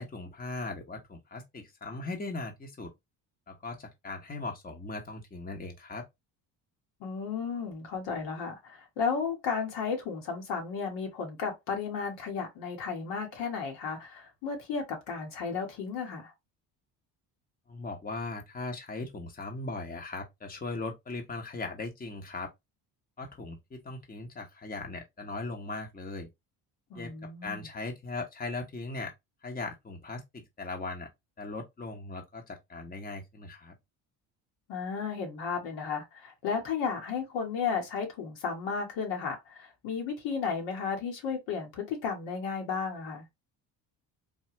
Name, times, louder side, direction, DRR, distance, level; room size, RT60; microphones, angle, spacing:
voice 1, 0.0-2.9 3.5-6.1 17.7-22.5 23.2-26.3 26.9-29.1 29.4-31.1 31.4-33.7, left 3 dB, 20° left, 0.9 m, -39 dB
voice 2, 7.0-16.3 26.9-27.7 34.7-43.2, left 5 dB, 75° left, 1.4 m, -34 dB
3.4 x 2.3 x 2.9 m
supercardioid pair, 80°, 43 cm